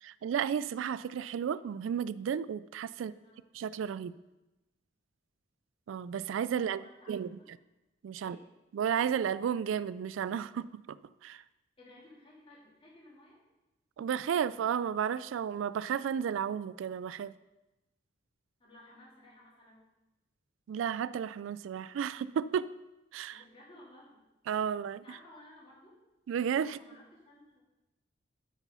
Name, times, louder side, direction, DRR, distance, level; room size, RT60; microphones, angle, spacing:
voice 1, 0.0-3.1 3.6-4.1 5.9-6.8 7.1-7.3 8.0-8.4 8.7-10.7 11.2-11.4 14.0-17.3 20.7-22.7 23.1-23.4 24.5-25.0 26.3-26.8, right 8 dB, 80° right, 18 dB, 0.3 m, -32 dB
voice 2, 2.9-3.4 6.6-7.5 8.2-8.5 11.8-13.4 18.6-19.8 23.3-24.2 24.9-26.0 26.6-27.6, left 1 dB, 30° left, -6 dB, 3.3 m, -56 dB
8.1 x 7.2 x 5.5 m, 1.0 s
head